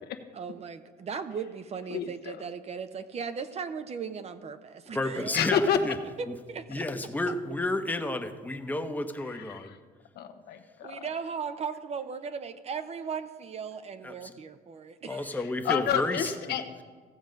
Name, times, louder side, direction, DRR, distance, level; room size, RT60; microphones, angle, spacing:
voice 1, 0.3-5.3 6.2-6.8 7.3-7.4 10.8-15.3, right 6 dB, 40° right, 10 dB, 0.7 m, -37 dB
voice 2, 1.9-2.4 5.3-5.8 9.3-9.8 10.1-10.9 15.6-16.8, left 8 dB, 70° left, 7 dB, 1.0 m, -29 dB
voice 3, 4.9-5.9 6.3-6.4 6.7-9.7 14.0-14.3 15.1-16.3, left 2 dB, 10° left, 6 dB, 0.9 m, -31 dB
15.0 x 7.1 x 5.2 m, 1.5 s
cardioid pair, 110°, 17 cm